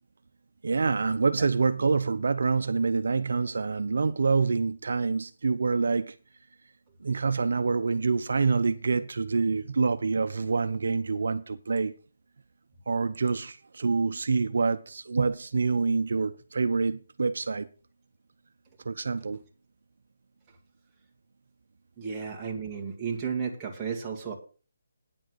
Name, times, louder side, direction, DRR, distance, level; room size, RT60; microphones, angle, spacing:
voice 1, 0.6-6.2 7.0-12.0 12.9-17.7 18.8-19.4, right 4 dB, 70° right, 0.7 m, -26 dB
voice 2, 22.0-24.3, right 6 dB, 15° right, 2.0 m, -33 dB
9.6 x 7.7 x 6.2 m
hypercardioid pair, 165°, 0 cm